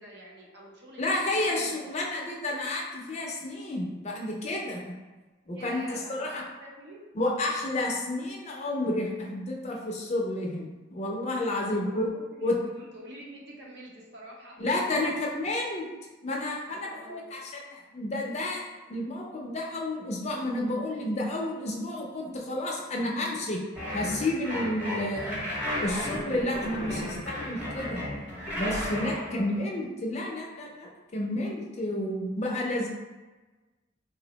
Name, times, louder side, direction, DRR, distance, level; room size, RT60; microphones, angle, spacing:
voice 1, 0.0-2.2 5.5-7.1 11.5-14.6 16.7-17.4 29.2-29.5, equal, 60° right, -2 dB, 0.7 m, -47 dB
voice 2, 1.0-4.8 5.5-6.4 7.1-12.1 12.4-12.6 14.6-15.9 16.2-17.4 17.7-18.6 18.9-23.6 23.9-25.4 25.8-28.0 28.6-32.9, left 1 dB, 35° left, -1 dB, 0.5 m, -30 dB
sound 1, 23.7-29.2, left 1 dB, 10° right, 0.8 m, -33 dB
3.9 x 2.0 x 2.8 m, 1.2 s
head